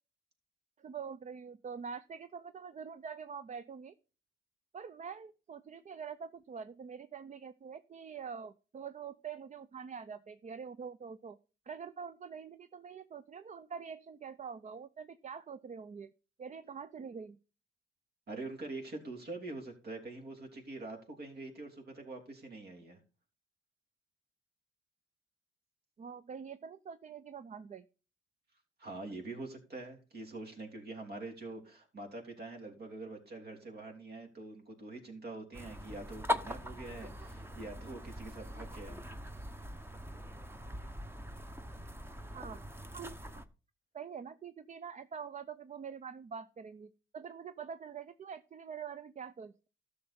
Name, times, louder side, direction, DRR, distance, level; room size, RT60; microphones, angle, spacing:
voice 1, 0.8-3.9 4.7-11.4 11.7-16.1 16.4-17.4 26.0-27.8 42.3-42.6 42.9-43.2 43.9-49.7, right 6 dB, 40° right, 14 dB, 0.6 m, -45 dB
voice 2, 18.3-23.0 28.8-39.0, right 2 dB, 55° right, 3 dB, 3.3 m, -45 dB
sound 1, 35.5-43.4, left 1 dB, 10° right, 1.0 m, -41 dB
13.0 x 6.6 x 4.3 m, 0.34 s
cardioid pair, 90°, 20 cm